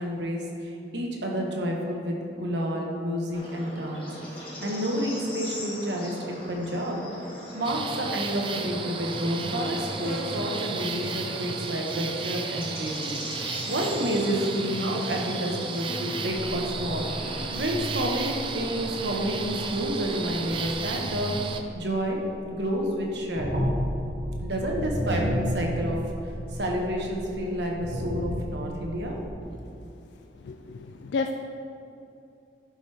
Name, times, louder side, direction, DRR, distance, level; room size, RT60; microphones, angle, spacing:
voice 1, 0.0-4.1 4.6-7.0 7.5-13.2 13.7-17.1 17.5-21.3 21.7-22.2 22.5-23.6 24.4-26.0 26.2-29.2, equal, 80° right, 0 dB, 1.2 m, -29 dB
Bird / Insect, 3.3-20.7, left 1 dB, 30° left, 1.7 m, -40 dB
sound 1, 7.6-21.6, right 4 dB, 30° right, 0.4 m, -34 dB
sound 2, 16.6-22.7 22.9-29.4, equal, 60° right, 1.4 m, -32 dB
voice 2, 30.4-31.4, left 3 dB, 75° left, 5 dB, 0.3 m, -31 dB
11.0 x 5.1 x 3.4 m, 2.7 s
head